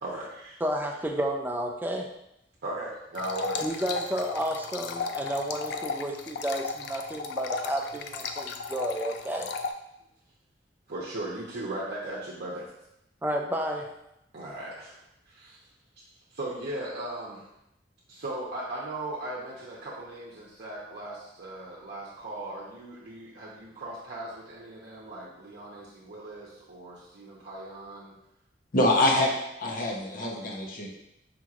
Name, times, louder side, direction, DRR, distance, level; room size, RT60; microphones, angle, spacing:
voice 1, 0.0-0.6 2.6-3.7 10.9-12.7 14.3-15.6 16.3-17.5 18.1-28.2 28.8-29.2, right 1 dB, 60° right, -6 dB, 0.7 m, -38 dB
voice 2, 0.6-2.1 3.6-9.5 13.2-13.9, right 1 dB, 10° right, 1 dB, 0.4 m, -31 dB
sound 1, 3.1-9.7, left 4 dB, 65° left, 0.3 m, -35 dB
voice 3, 28.7-29.3 29.6-30.9, left 1 dB, 50° left, 0 dB, 0.7 m, -25 dB
5.1 x 3.0 x 2.4 m, 0.83 s
head